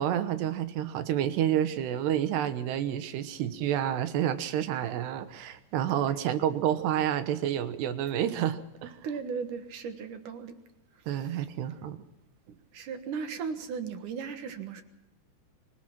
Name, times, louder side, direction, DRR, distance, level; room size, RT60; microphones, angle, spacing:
voice 1, 0.0-9.0 11.1-12.0, right 10 dB, 80° right, 12 dB, 3.2 m, -29 dB
voice 2, 9.0-10.6 12.5-14.8, right 6 dB, 60° right, 9 dB, 2.4 m, -36 dB
25.0 x 18.0 x 5.9 m, 0.83 s
omnidirectional pair, 5.0 m